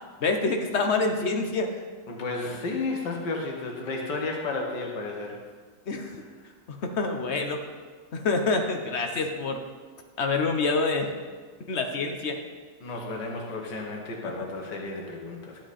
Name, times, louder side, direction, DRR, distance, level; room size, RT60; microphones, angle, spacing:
voice 1, 0.2-1.7 5.9-6.1 6.7-7.6 8.1-9.6 10.2-11.1 11.7-12.4, left 3 dB, 45° left, 4 dB, 1.0 m, -26 dB
voice 2, 2.1-5.4 6.4-6.8 12.8-15.6, left 3 dB, 75° left, 0 dB, 1.9 m, -33 dB
12.0 x 8.1 x 4.2 m, 1.5 s
omnidirectional pair, 1.9 m